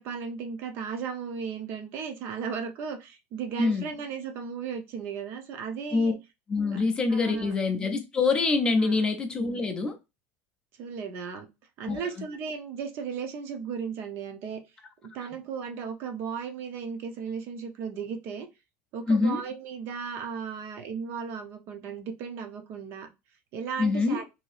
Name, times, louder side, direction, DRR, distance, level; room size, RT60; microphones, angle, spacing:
voice 1, 0.0-6.1 6.7-6.8 7.1-7.5 8.8-9.0 10.8-11.5 11.8-14.6 15.0-18.5 18.9-23.1 23.5-24.3, right 6 dB, 40° right, 0.6 m, -35 dB
voice 2, 3.6-3.9 5.9-6.1 6.5-10.0 11.9-12.1 19.1-19.4 23.8-24.2, left 3 dB, 15° left, 0.4 m, -25 dB
2.8 x 2.7 x 3.1 m
cardioid pair, 175°, 6 cm